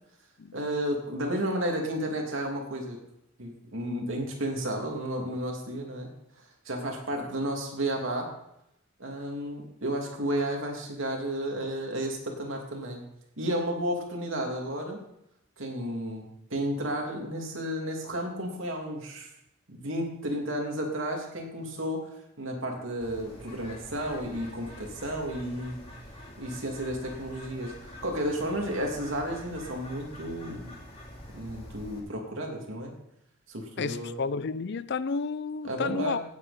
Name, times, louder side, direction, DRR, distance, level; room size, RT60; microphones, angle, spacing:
voice 1, 0.5-3.0 3.4-6.1 6.4-8.3 9.0-13.0 13.4-15.0 15.6-19.3 19.7-25.8 26.4-30.8 31.3-32.9 33.5-34.2 35.7-36.2, right 1 dB, 65° right, 2.8 m, -32 dB
Bird, 23.0-32.0, left 1 dB, 30° left, 2.7 m, -46 dB
voice 2, 33.8-36.2, left 4 dB, 55° left, 0.5 m, -31 dB
17.0 x 8.2 x 4.3 m
head